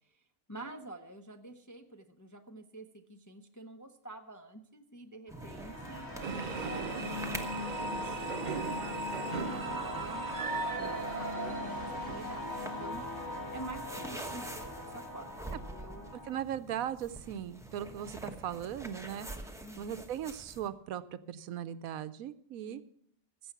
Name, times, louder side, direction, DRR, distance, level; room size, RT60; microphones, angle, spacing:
voice 1, 0.5-6.1 6.6-13.0 13.5-16.1 19.6-19.9, right 1 dB, 20° left, 5 dB, 0.5 m, -48 dB
sound 1, 5.3-16.3, left 2 dB, 80° left, 4.1 m, -39 dB
sound 2, 5.3-20.7, right 1 dB, 5° right, 0.8 m, -47 dB
sound 3, 6.2-12.5, right 6 dB, 50° right, 0.6 m, -39 dB
voice 2, 16.3-19.3 19.8-21.0 21.3-22.8, right 10 dB, 80° right, 14 dB, 1.1 m, -38 dB
15.5 x 7.0 x 5.9 m, 0.69 s
omnidirectional pair, 1.5 m